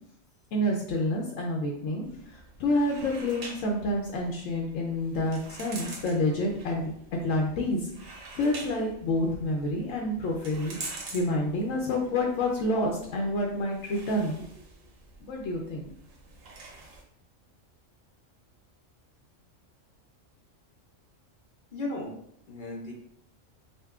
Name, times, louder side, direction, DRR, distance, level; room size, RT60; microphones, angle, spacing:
voice 1, 0.5-6.9 7.2-10.8 11.1-14.4 15.2-15.9, left 1 dB, 80° left, 0 dB, 0.9 m, -28 dB
sound 1, 2.0-17.0, right 3 dB, 80° right, 1.1 m, -46 dB
voice 2, 21.7-22.2 22.5-22.9, left 2 dB, 55° left, -2 dB, 0.6 m, -35 dB
5.2 x 2.1 x 2.3 m, 0.69 s
omnidirectional pair, 1.3 m